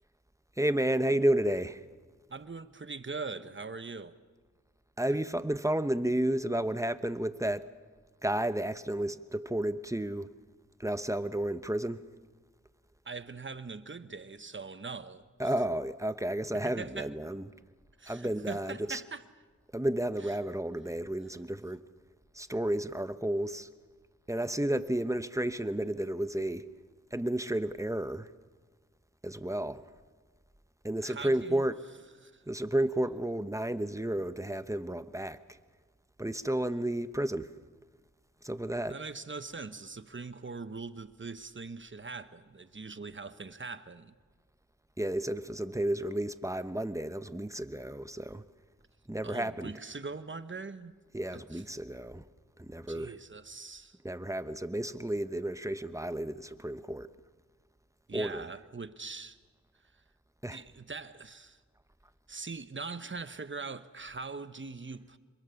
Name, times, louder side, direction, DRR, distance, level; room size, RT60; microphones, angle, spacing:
voice 1, 0.6-1.8 5.0-7.7 8.2-10.3 10.8-12.0 15.4-17.5 18.1-19.0 19.7-21.8 22.3-23.7 24.3-26.7 27.1-28.3 29.2-29.8 30.8-31.9 32.4-35.6 36.2-37.5 38.4-39.0 45.0-48.4 49.1-49.7 51.1-52.2 52.6-53.1 54.0-57.1 58.1-58.5 60.4-60.6, right 1 dB, 10° right, 1.0 m, -32 dB
voice 2, 2.3-4.2 5.1-5.2 13.0-15.5 16.5-17.1 18.0-19.2 31.0-31.6 32.2-32.4 38.9-44.1 49.2-51.0 51.3-51.6 52.9-54.0 58.1-59.4 60.5-61.6 62.3-65.2, right 4 dB, 40° right, 1.1 m, -42 dB
26.5 x 22.5 x 7.1 m
wide cardioid pair, 60°, 30 cm